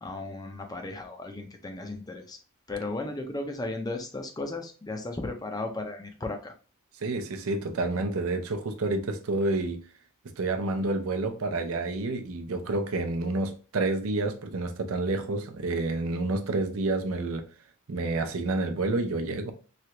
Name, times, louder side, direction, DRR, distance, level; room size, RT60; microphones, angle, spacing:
voice 1, 0.0-2.4 2.7-6.5, left 2 dB, 15° left, 0.5 m, -35 dB
voice 2, 7.0-9.8 10.4-17.4 17.9-19.5, right 2 dB, 80° right, 0.6 m, -29 dB
3.2 x 2.4 x 2.8 m
head